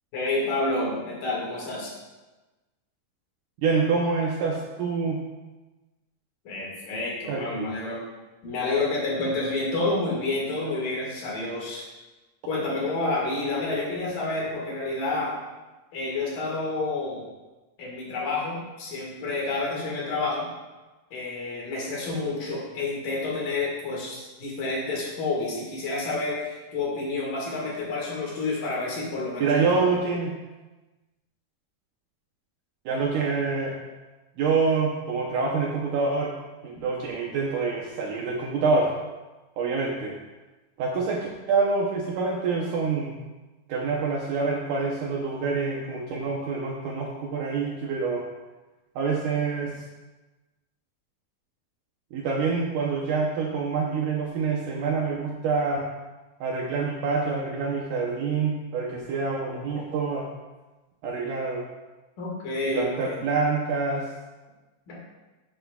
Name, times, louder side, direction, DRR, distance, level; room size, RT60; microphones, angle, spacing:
voice 1, 0.1-1.9 6.4-8.0 8.4-11.9 12.5-15.3 15.9-17.2 17.8-20.5 21.1-29.8 62.2-63.2 64.9-65.0, left 2 dB, 60° left, -4 dB, 3.3 m, -29 dB
voice 2, 3.6-5.2 7.3-7.7 29.4-30.3 32.9-33.7 34.4-36.3 36.6-38.9 39.6-40.1 40.8-43.2 43.7-48.2 49.0-49.8 52.1-55.9 56.4-60.3 61.0-61.6 62.7-64.1, right 4 dB, 75° right, -2 dB, 2.0 m, -26 dB
12.0 x 7.3 x 2.3 m, 1.2 s
omnidirectional pair, 4.4 m